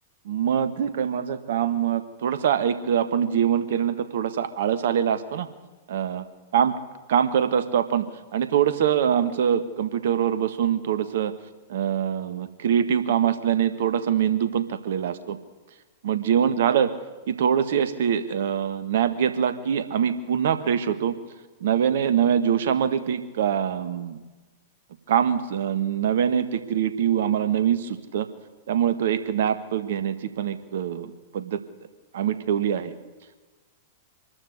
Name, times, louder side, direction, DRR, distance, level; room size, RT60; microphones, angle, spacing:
voice 1, 0.2-5.5 5.9-6.2 6.5-6.7 7.1-8.1 8.3-11.3 11.7-15.4 16.0-16.9 17.3-21.1 21.6-24.2 25.1-28.3 28.7-31.6 32.1-32.9, right 8 dB, 60° right, 12 dB, 1.6 m, -24 dB
25.0 x 12.5 x 8.2 m, 1.2 s
figure-of-eight pair, 100°, 0 cm